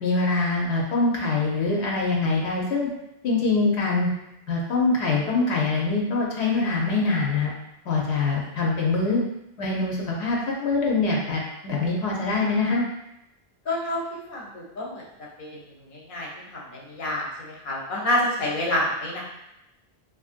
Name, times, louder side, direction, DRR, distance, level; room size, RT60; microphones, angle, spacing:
voice 1, 0.0-2.9 3.2-4.1 4.5-7.5 7.8-9.2 9.6-12.8, left 3 dB, 85° left, -2 dB, 0.9 m, -24 dB
voice 2, 13.7-15.0 15.4-15.6 15.9-16.3 16.9-19.2, left 1 dB, 55° left, -3 dB, 0.8 m, -28 dB
2.9 x 2.5 x 2.4 m, 0.85 s
omnidirectional pair, 1.1 m